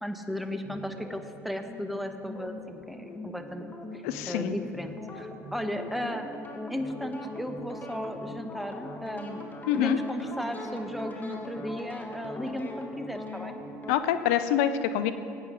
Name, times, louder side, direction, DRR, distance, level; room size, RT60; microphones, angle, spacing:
voice 1, 0.0-6.3 6.7-9.4 9.7-13.5, equal, ahead, 6 dB, 1.0 m, -35 dB
sound 1, 0.6-13.9, left 2 dB, 20° left, 1.6 m, -41 dB
voice 2, 4.0-4.6 9.7-10.0 13.9-15.1, left 10 dB, 70° left, 11 dB, 0.6 m, -26 dB
16.5 x 9.0 x 3.7 m, 2.6 s
hypercardioid pair, 70°, 8 cm